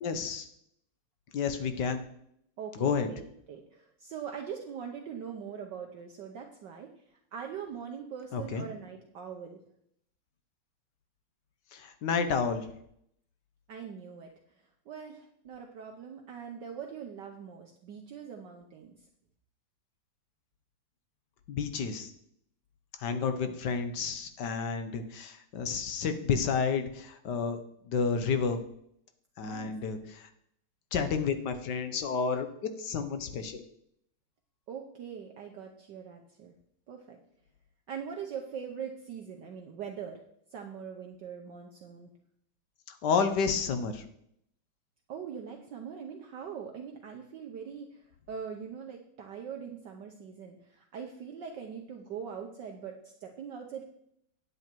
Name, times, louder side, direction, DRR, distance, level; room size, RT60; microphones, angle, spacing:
voice 1, 0.0-0.5 1.3-2.0 2.7-3.1 8.3-8.6 11.7-12.7 21.5-22.1 23.0-27.6 27.9-28.6 29.4-30.3 30.9-32.5 32.8-33.6 42.9-44.0, left 5 dB, 60° left, 9 dB, 1.3 m, -30 dB
voice 2, 2.6-9.6 13.7-19.0 23.2-23.6 29.4-29.7 34.7-36.5 36.9-37.2 37.9-40.2 40.5-42.1 45.1-53.8, right 7 dB, 60° right, 2 dB, 1.3 m, -42 dB
9.6 x 8.2 x 4.5 m, 0.72 s
omnidirectional pair, 2.4 m